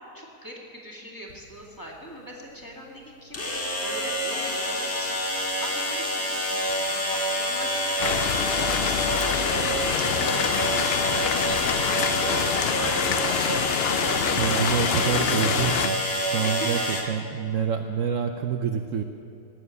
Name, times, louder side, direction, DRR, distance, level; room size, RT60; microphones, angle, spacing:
voice 1, 0.0-15.3 16.4-17.1, equal, 10° left, -3 dB, 2.1 m, -41 dB
sound 1, 1.3-1.4 3.3-17.0, equal, 45° left, 2.1 m, -27 dB
sound 2, 8.0-15.9, left 8 dB, 85° left, 0.5 m, -26 dB
voice 2, 14.4-19.0, right 7 dB, 65° right, 6 dB, 0.9 m, -27 dB
19.0 x 7.2 x 8.4 m, 2.8 s
omnidirectional pair, 1.7 m